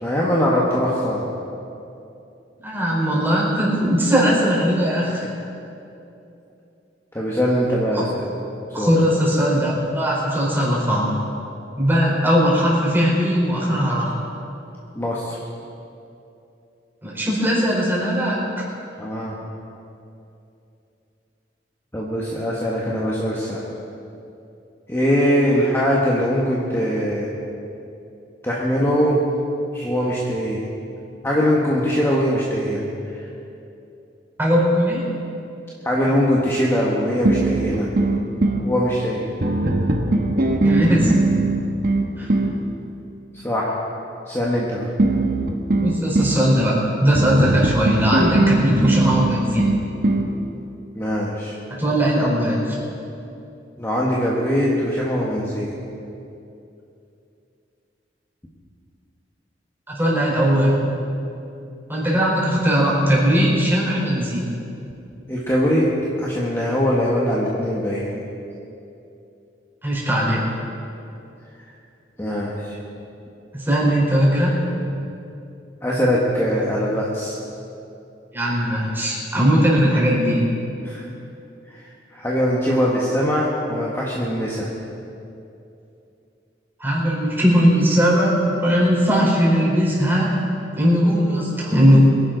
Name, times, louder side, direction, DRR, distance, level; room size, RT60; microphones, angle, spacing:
voice 1, 0.0-1.2 7.1-8.3 8.8-8.9 14.9-15.3 19.0-19.3 21.9-23.6 24.9-27.3 28.4-29.2 29.7-30.7 31.2-33.2 35.8-37.9 38.6-39.2 43.4-43.7 44.3-44.9 50.9-51.5 53.8-55.7 65.3-68.1 72.2-72.8 75.8-77.4 80.8-81.0 81.7-81.8 82.1-84.7, equal, 15° left, -5 dB, 1.4 m, -21 dB
voice 2, 2.6-5.3 7.9-8.0 8.7-11.1 11.8-14.1 17.0-18.4 34.4-35.2 40.6-41.2 42.2-42.3 45.8-49.7 51.8-52.8 59.9-60.8 61.9-64.4 69.8-70.4 73.5-74.6 78.3-80.4 86.8-90.4 90.7-92.0, equal, 10° right, -6 dB, 4.2 m, -19 dB
sound 1, 37.3-38.7 39.4-42.6 45.0-46.4 47.1-50.3, right 2 dB, 55° right, 1.2 m, -20 dB
23.0 x 11.0 x 4.0 m, 2.7 s
head